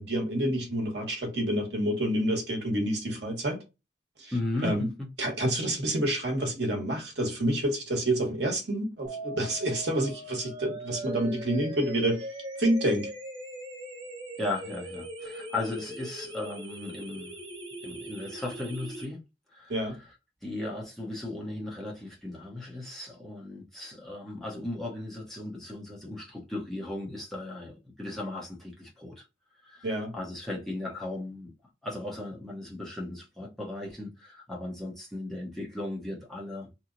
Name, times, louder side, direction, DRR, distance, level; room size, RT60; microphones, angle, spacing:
voice 1, 0.0-3.6 4.2-4.3 4.6-4.9 5.2-12.3 12.6-13.1 19.7-20.0 29.8-30.1, right 1 dB, 65° right, 1.0 m, -28 dB
voice 2, 4.3-5.1 14.4-17.3 17.8-19.2 19.5-19.8 20.4-29.2 29.6-29.9 30.1-31.5 31.8-36.7, left 2 dB, ahead, 0.7 m, -36 dB
sound 1, 9.0-19.0, right 2 dB, 30° right, 0.9 m, -40 dB
2.9 x 2.0 x 3.7 m
head